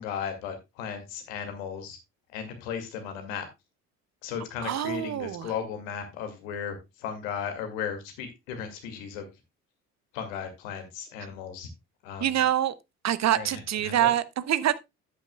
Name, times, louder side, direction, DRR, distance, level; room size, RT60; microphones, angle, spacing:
voice 1, 0.0-2.0 2.3-3.5 4.2-9.3 10.1-11.7 12.0-12.4 13.3-14.1, left 7 dB, 70° left, 2.2 m, -36 dB
voice 2, 4.6-5.5 12.2-12.7 13.0-14.8, right 11 dB, 40° right, 0.8 m, -25 dB
13.0 x 9.1 x 2.2 m
figure-of-eight pair, 50°, 41 cm